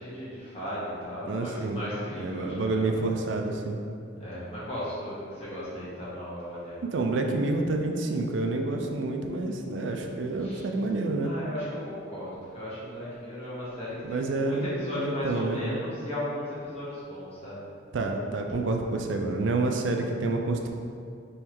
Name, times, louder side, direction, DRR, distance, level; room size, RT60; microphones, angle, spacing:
voice 1, 0.0-3.1 4.2-6.8 10.4-10.6 11.2-17.6, left 1 dB, 30° left, -9 dB, 1.4 m, -36 dB
voice 2, 1.2-1.8 2.2-3.8 6.9-11.3 14.0-14.7 15.0-15.6 17.9-20.7, right 2 dB, 65° right, 3 dB, 0.4 m, -28 dB
3.6 x 3.1 x 4.5 m, 2.4 s
head